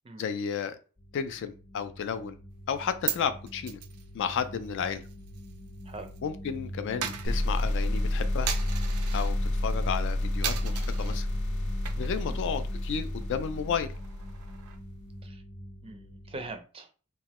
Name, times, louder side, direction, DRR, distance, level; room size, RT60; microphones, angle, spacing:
voice 1, 0.2-0.8 1.1-2.4 2.7-3.8 4.1-5.0 6.2-8.5 9.1-9.4 9.6-11.3 12.0-13.9, left 7 dB, 55° left, 0.3 m, -32 dB
sound 1, 1.0-16.5, equal, 30° left, 0.7 m, -43 dB
Coin (dropping), 2.6-6.2 6.4-9.4 9.8-10.1 10.4-11.2 11.7-12.3 12.6-12.7 13.1-15.0, right 9 dB, 85° right, 0.4 m, -38 dB
sound 2, 7.3-14.8, left 1 dB, 85° left, 0.7 m, -30 dB
voice 2, 12.0-12.4 15.2-15.4 15.8-16.9, right 2 dB, 25° right, 0.4 m, -42 dB
3.0 x 2.2 x 2.9 m
head